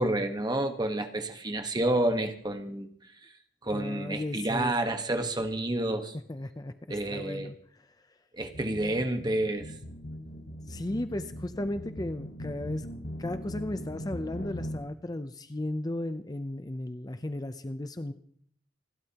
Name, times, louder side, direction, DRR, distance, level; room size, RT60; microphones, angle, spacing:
voice 1, 0.0-2.9 3.2-3.3 3.6-6.2 6.9-7.5 8.3-9.7, right 1 dB, 25° right, 6 dB, 1.3 m, -29 dB
voice 2, 3.7-4.7 6.3-6.7 7.1-7.9 10.3-12.9 13.2-18.1, left 1 dB, 20° left, 10 dB, 0.6 m, -35 dB
sound 1, 8.4-14.8, equal, 80° left, 3.5 m, -40 dB
28.5 x 12.0 x 2.9 m, 0.63 s
head